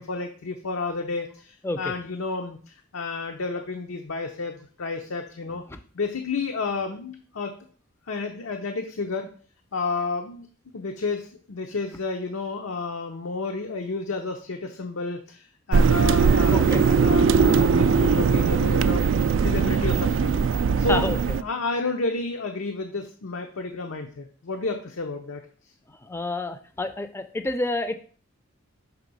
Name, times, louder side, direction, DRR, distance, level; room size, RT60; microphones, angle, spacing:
voice 1, 0.0-5.6 5.9-7.6 8.1-9.3 9.7-10.5 10.7-19.0 19.4-20.4 20.8-25.4, left 3 dB, 80° left, 4 dB, 0.7 m, -31 dB
sound 1, 15.7-21.4, right 5 dB, 60° right, 0.3 m, -20 dB
voice 2, 16.5-16.8 18.8-18.9 20.7-21.2 25.9-27.9, left 2 dB, 10° left, 9 dB, 0.4 m, -29 dB
5.9 x 3.4 x 5.3 m, 0.43 s
head